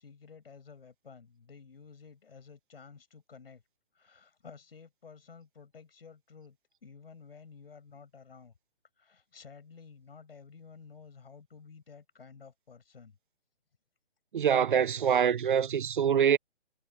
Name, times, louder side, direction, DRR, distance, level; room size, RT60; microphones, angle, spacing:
voice 1, 0.0-3.6 3.9-6.6 6.8-8.5 9.0-13.2, left 5 dB, 70° left, 7.7 m, -52 dB
voice 2, 14.3-16.4, right 8 dB, 55° right, 0.8 m, -25 dB
hypercardioid pair, 165°, 30 cm